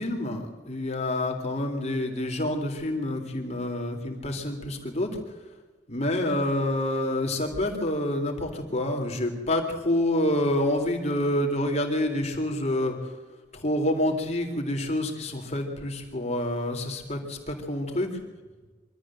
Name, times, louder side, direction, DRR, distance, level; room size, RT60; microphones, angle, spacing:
voice 1, 0.0-5.1 5.9-13.1 13.5-18.1, left 1 dB, 35° left, 2 dB, 3.6 m, -27 dB
24.5 x 13.5 x 7.7 m, 1.3 s
head